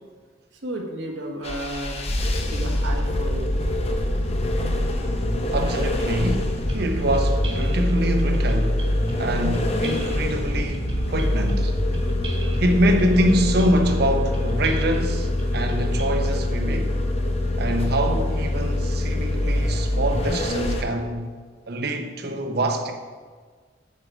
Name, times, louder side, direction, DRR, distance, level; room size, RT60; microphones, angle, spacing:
voice 1, 0.6-2.0 2.5-3.5, right 1 dB, 70° right, 1.4 m, -32 dB
sound 1, 1.4-20.8, left 1 dB, 30° left, 0.8 m, -24 dB
voice 2, 5.5-8.9 9.2-11.7 12.6-16.9 17.6-21.3 21.7-22.9, right 1 dB, 55° right, 0.8 m, -25 dB
sound 2, 6.7-16.3, right 1 dB, 30° right, 1.4 m, -37 dB
8.6 x 4.8 x 6.1 m
head